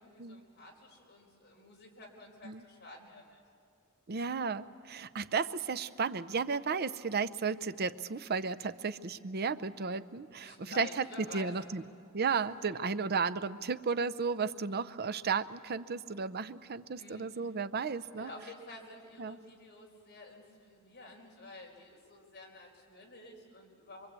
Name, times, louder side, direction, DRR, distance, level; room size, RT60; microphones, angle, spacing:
voice 1, 0.0-3.4 10.4-11.5 12.3-12.4 12.7-12.8 17.0-17.5 18.2-24.1, left 2 dB, 50° left, -1 dB, 4.7 m, -51 dB
voice 2, 4.1-11.8 12.1-18.3 19.2-19.4, right 5 dB, 50° right, 13 dB, 0.6 m, -34 dB
24.0 x 23.5 x 8.3 m, 2.3 s
head